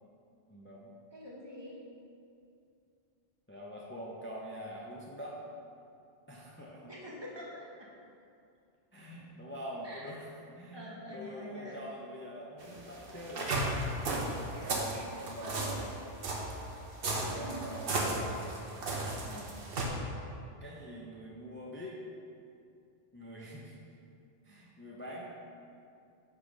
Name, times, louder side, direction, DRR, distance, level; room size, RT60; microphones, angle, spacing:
voice 1, 0.5-1.0 3.5-5.4 6.3-6.9 8.9-13.6 15.2-16.0 17.3-18.4 20.6-22.0 23.1-23.8 24.4-25.2, equal, 15° left, -4 dB, 0.6 m, -45 dB
voice 2, 1.1-1.8 6.9-7.9 9.8-10.1 10.7-11.8 14.4-15.7 17.3-17.7 19.2-19.7, equal, 25° right, -5 dB, 1.0 m, -46 dB
sound 1, 12.6-19.9, right 2 dB, 65° right, 1.0 m, -34 dB
5.6 x 5.0 x 5.2 m, 2.5 s
omnidirectional pair, 1.1 m